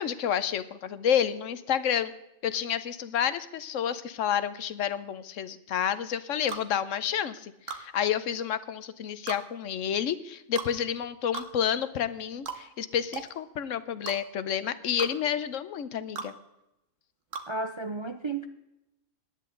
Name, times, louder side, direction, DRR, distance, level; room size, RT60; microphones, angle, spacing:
voice 1, 0.0-2.1 2.4-16.3, left 9 dB, 70° left, 14 dB, 1.1 m, -30 dB
sound 1, 6.5-6.7 7.7-7.8 9.3-9.4 10.6-10.7 11.3-11.5 12.5-12.6 13.1-13.3 14.1-14.2 15.0-15.1 16.2-16.3 17.3-17.5, right 5 dB, 75° right, 1.6 m, -36 dB
voice 2, 17.5-18.5, right 3 dB, 35° right, 7 dB, 0.4 m, -33 dB
17.5 x 11.0 x 3.8 m, 0.88 s
omnidirectional pair, 1.4 m